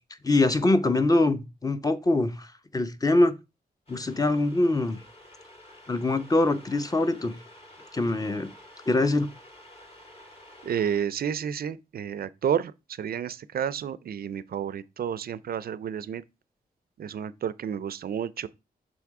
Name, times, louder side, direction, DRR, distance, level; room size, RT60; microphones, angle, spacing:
voice 1, 0.2-2.5 2.7-3.3 3.9-5.0 5.9-7.4 7.9-8.5 8.9-9.3, left 2 dB, 25° left, 0.8 m, -23 dB
sound 1, 3.9-11.0, left 1 dB, 40° left, 2.1 m, -50 dB
voice 2, 10.6-16.2 17.0-18.5, right 8 dB, 70° right, 0.4 m, -31 dB
6.2 x 3.5 x 4.7 m
wide cardioid pair, 90°, 16 cm